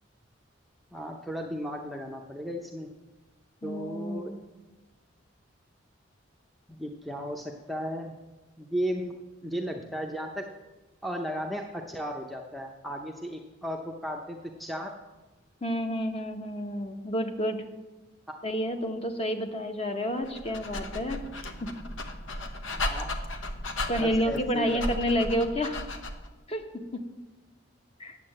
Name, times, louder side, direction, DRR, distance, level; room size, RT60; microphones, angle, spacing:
voice 1, 0.9-2.9 3.6-4.3 6.7-8.1 8.6-9.2 9.4-10.5 11.0-14.9 18.3-18.4 22.7-23.2 23.9-24.8, equal, ahead, 1 dB, 0.6 m, -35 dB
voice 2, 3.6-4.3 15.6-17.6 18.4-21.7 23.9-25.8 26.5-27.1 28.0-28.2, equal, 30° left, 6 dB, 1.0 m, -30 dB
Dog, 20.2-26.3, left 1 dB, 80° left, 1.0 m, -35 dB
9.4 x 8.0 x 7.6 m, 1.1 s
head